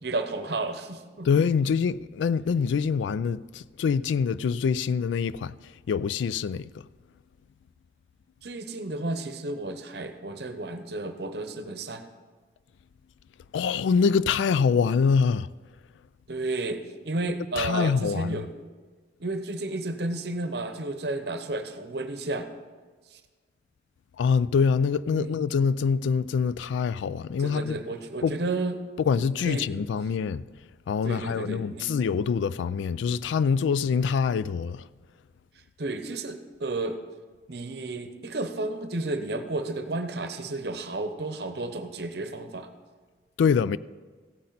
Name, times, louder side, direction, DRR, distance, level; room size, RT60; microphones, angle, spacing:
voice 1, 0.0-1.3 8.4-12.0 16.3-18.5 19.2-22.5 23.1-23.2 25.1-25.4 27.4-28.8 29.1-29.7 31.0-31.9 35.8-37.0 37.5-42.7, right 2 dB, 60° right, 0.8 m, -32 dB
voice 2, 1.2-5.6 5.9-6.8 13.5-15.5 17.6-18.4 24.2-27.8 28.2-28.4 29.0-30.4 30.9-34.9 43.4-43.8, left 6 dB, 80° left, 0.3 m, -25 dB
15.5 x 8.5 x 4.0 m
head